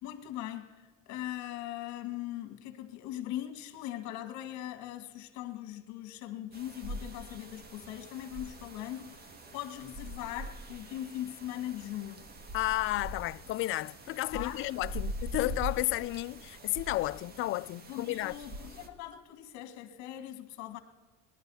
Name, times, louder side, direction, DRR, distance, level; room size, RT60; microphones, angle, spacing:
voice 1, 0.0-12.2 14.3-14.6 17.9-20.8, left 13 dB, 65° left, 1.7 m, -40 dB
sound 1, 6.5-18.9, equal, 30° right, 1.6 m, -43 dB
voice 2, 12.5-18.3, left 17 dB, 45° left, 0.4 m, -32 dB
19.0 x 11.5 x 5.5 m
cardioid pair, 125°, 31 cm